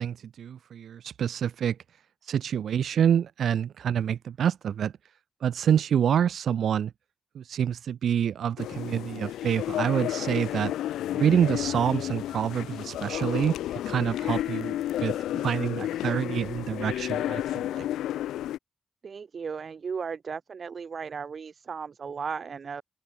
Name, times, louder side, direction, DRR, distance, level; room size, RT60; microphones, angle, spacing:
voice 1, 0.0-1.8 2.2-4.9 5.4-6.9 7.3-10.7 11.1-17.8, right 9 dB, 75° right, 5.1 m, -27 dB
sound 1, 8.6-18.6, left 13 dB, 85° left, 3.6 m, -31 dB
voice 2, 19.0-22.8, right 6 dB, 60° right, 5.9 m, -36 dB
open air
supercardioid pair, 40°, 0 cm